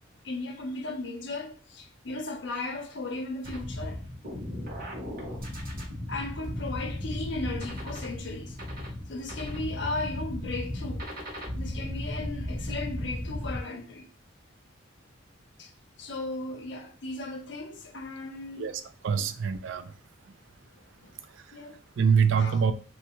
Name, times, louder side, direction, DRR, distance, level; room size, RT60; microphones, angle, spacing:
voice 1, 0.2-4.0 6.1-8.6 9.1-11.1 11.5-14.1 15.6-15.7 16.0-18.7 19.2-19.3 21.5-21.8 22.3-22.6, left 2 dB, 60° left, 0.5 m, -36 dB
sound 1, 3.4-13.6, left 1 dB, 50° right, 1.0 m, -35 dB
voice 2, 19.0-19.9 22.0-22.7, right 6 dB, 70° right, 0.4 m, -24 dB
3.2 x 2.3 x 2.9 m
head